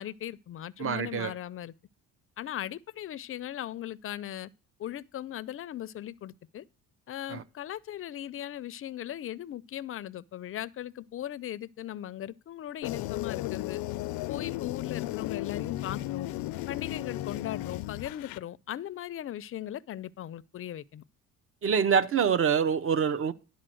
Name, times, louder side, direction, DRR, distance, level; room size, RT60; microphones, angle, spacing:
voice 1, 0.0-1.7 2.4-4.5 4.8-6.6 7.1-13.8 14.3-16.3 16.7-21.0, left 12 dB, 40° left, 0.5 m, -38 dB
voice 2, 0.8-1.4 7.3-7.4 21.6-23.3, right 7 dB, 40° right, 0.7 m, -25 dB
sound 1, 12.8-18.4, left 16 dB, 90° left, 0.6 m, -35 dB
11.5 x 4.2 x 7.6 m
cardioid pair, 125°, 34 cm